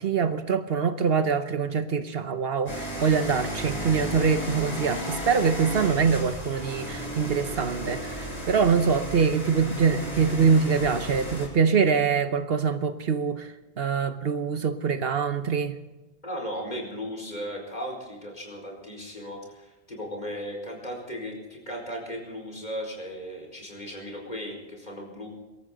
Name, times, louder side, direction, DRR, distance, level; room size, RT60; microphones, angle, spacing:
voice 1, 0.0-13.5 13.8-15.8, right 6 dB, 65° right, 1.1 m, -24 dB
sound 1, 2.7-11.5, equal, 10° left, 7.1 m, -34 dB
voice 2, 16.2-25.3, equal, 40° left, 4.7 m, -36 dB
24.5 x 13.5 x 3.9 m
omnidirectional pair, 1.1 m